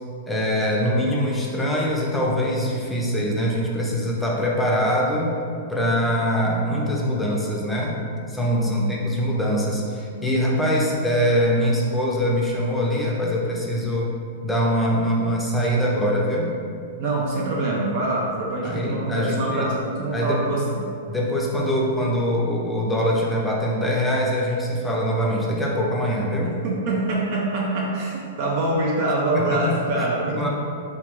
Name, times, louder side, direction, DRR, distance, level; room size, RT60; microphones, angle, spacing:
voice 1, 0.3-5.3 5.7-8.0 8.3-14.1 14.4-16.5 18.6-19.7 20.1-20.4 21.1-26.5 29.3-30.1 30.4-30.5, equal, 10° left, -3 dB, 0.5 m, -23 dB
voice 2, 8.5-8.9 17.0-20.9 26.4-30.5, right 2 dB, 55° right, -4 dB, 0.5 m, -25 dB
3.5 x 2.3 x 3.0 m, 2.4 s
hypercardioid pair, 130°, 0 cm